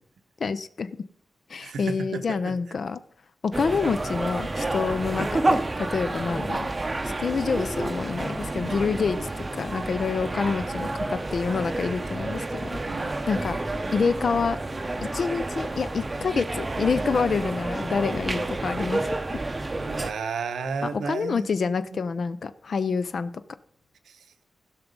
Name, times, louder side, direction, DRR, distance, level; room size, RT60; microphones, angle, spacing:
voice 1, 0.4-1.0 1.5-3.0 3.4-6.7 7.2-12.8 13.3-13.6 13.9-14.6 15.1-19.4 20.9-23.3, left 5 dB, 55° left, 13 dB, 0.4 m, -27 dB
voice 2, 1.6-2.5 9.2-9.3 10.2-10.3 12.8-13.2 19.8-22.0 24.0-24.3, right 5 dB, 85° right, 10 dB, 0.9 m, -33 dB
sound 1, 3.5-20.1, right 2 dB, 25° right, 0.6 m, -29 dB
15.5 x 6.0 x 5.2 m, 0.64 s
wide cardioid pair, 115°, 0 cm